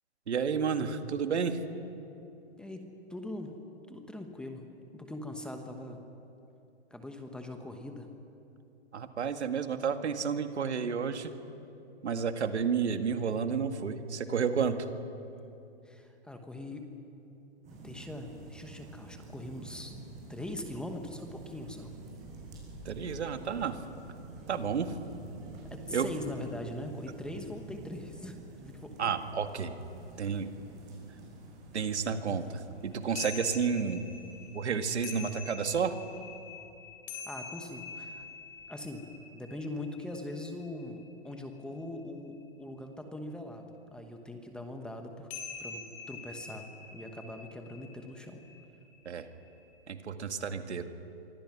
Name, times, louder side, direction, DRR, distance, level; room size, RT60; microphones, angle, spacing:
voice 1, 0.3-1.6 8.9-11.3 12.0-14.9 22.9-23.8 24.5-24.9 25.9-26.1 29.0-29.7 30.2-30.5 31.7-34.0 34.5-35.9 49.1-49.3 49.9-50.9, right 6 dB, 80° right, 7 dB, 2.1 m, -31 dB
voice 2, 2.6-3.6 3.9-4.6 4.9-6.0 6.9-8.1 15.8-16.8 17.7-19.9 20.3-21.9 25.7-28.4 28.6-29.2 37.1-38.3 38.7-39.1 39.3-45.3 45.6-48.4, left 1 dB, 5° left, 5 dB, 1.0 m, -41 dB
sound 1, 17.6-34.9, right 2 dB, 20° right, 6.6 m, -48 dB
sound 2, 33.2-41.8 45.3-49.9, left 5 dB, 25° left, 3.0 m, -46 dB
26.0 x 24.5 x 6.1 m, 2.8 s
hypercardioid pair, 155°, 33 cm